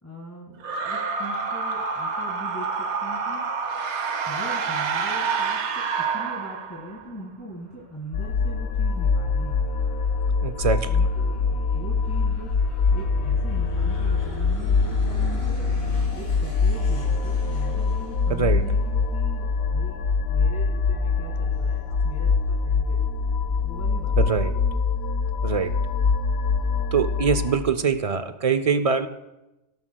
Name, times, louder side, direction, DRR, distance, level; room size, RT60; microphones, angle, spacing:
voice 1, 0.0-3.4 4.2-9.6 10.8-12.5 12.9-15.6 16.1-23.1 23.6-24.4, equal, 15° left, -4 dB, 1.7 m, -41 dB
sound 1, 0.6-7.0, right 5 dB, 75° right, 1.0 m, -28 dB
Aircraft, 6.5-19.7, equal, 45° left, 3.5 m, -46 dB
sound 2, 8.1-27.6, left 4 dB, 75° left, 0.9 m, -24 dB
voice 2, 10.4-10.9 18.3-18.6 24.2-24.5 25.4-25.7 26.9-29.1, right 6 dB, 55° right, 11 dB, 0.4 m, -23 dB
17.5 x 12.5 x 2.2 m, 1.0 s
omnidirectional pair, 1.2 m